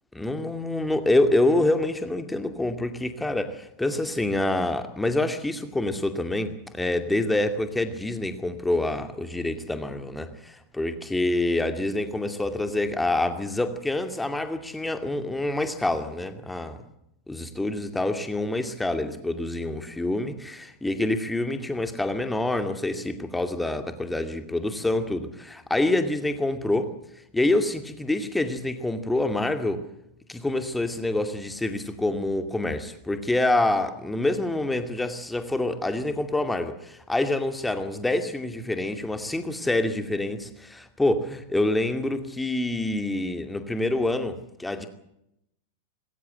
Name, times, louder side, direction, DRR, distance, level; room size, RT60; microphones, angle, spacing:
voice 1, 0.1-16.8 17.3-26.9 27.3-29.8 30.3-44.9, left 2 dB, 5° left, 8 dB, 2.4 m, -26 dB
20.5 x 17.5 x 8.0 m, 0.80 s
figure-of-eight pair, 90°, 0 cm